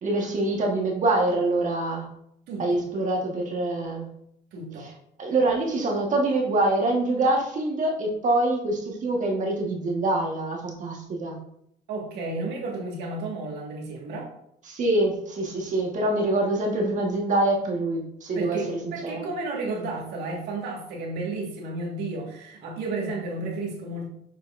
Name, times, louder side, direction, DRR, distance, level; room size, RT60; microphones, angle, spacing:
voice 1, 0.0-2.0 2.6-4.1 4.8-4.9 5.2-11.3 14.7-18.6 19.0-19.2, right 2 dB, 50° right, 0 dB, 1.5 m, -25 dB
voice 2, 2.5-2.8 4.5-4.9 11.9-14.3 18.3-24.1, right 2 dB, 80° right, -2 dB, 1.9 m, -32 dB
7.2 x 5.5 x 2.6 m, 0.73 s
cardioid pair, 110°, 17 cm